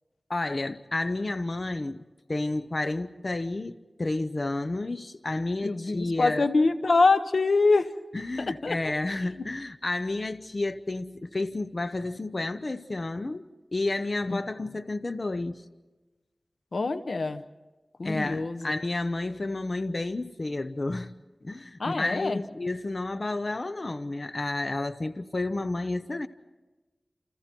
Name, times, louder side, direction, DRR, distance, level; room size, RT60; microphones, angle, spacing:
voice 1, 0.3-2.0 2.3-6.5 8.1-13.5 13.7-15.6 18.0-21.1 21.4-26.3, left 2 dB, 55° left, 0.8 m, -31 dB
voice 2, 5.6-7.9 8.4-8.9 9.4-9.5 14.3-14.4 16.7-17.4 18.0-18.7 21.8-22.4, left 3 dB, 90° left, 1.0 m, -25 dB
29.0 x 29.0 x 4.5 m
wide cardioid pair, 60°, 0 cm